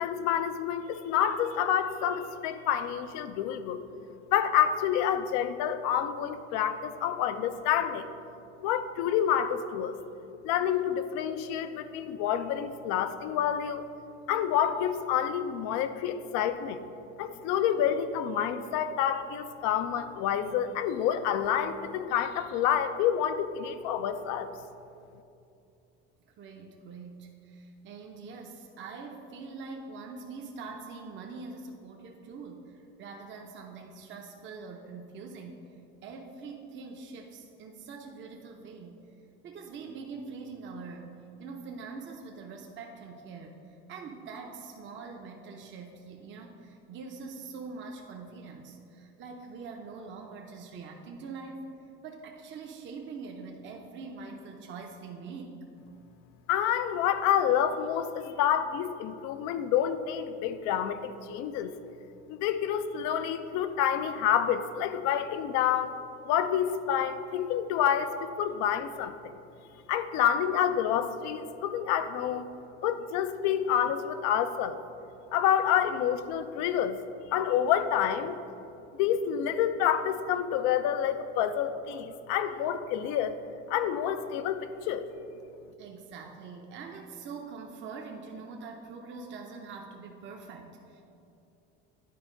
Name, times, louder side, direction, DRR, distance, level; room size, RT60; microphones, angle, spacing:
voice 1, 0.0-3.8 4.3-8.1 8.6-9.9 10.4-13.9 14.3-16.8 17.2-24.5 56.5-61.7 62.3-65.9 66.2-69.2 69.9-72.5 72.8-74.8 75.3-77.0 77.3-78.4 79.0-83.3 83.7-85.1, left 9 dB, 70° left, 11 dB, 0.5 m, -28 dB
voice 2, 26.3-35.6 36.0-51.6 52.0-55.6 85.8-91.0, right 4 dB, 40° right, 1 dB, 0.7 m, -44 dB
10.0 x 4.4 x 3.8 m, 2.7 s
supercardioid pair, 100°, 29 cm